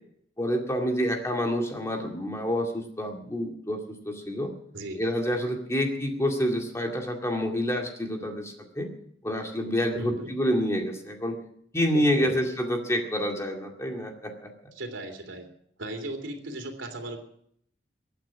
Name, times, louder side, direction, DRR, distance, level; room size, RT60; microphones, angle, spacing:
voice 1, 0.4-4.5 4.9-8.9 9.2-11.3 11.7-14.5, equal, 15° left, 2 dB, 2.1 m, -28 dB
voice 2, 9.9-10.3 11.9-12.4 14.7-15.5 15.8-17.2, right 1 dB, 80° right, 5 dB, 3.1 m, -36 dB
23.0 x 9.2 x 6.0 m, 0.68 s
head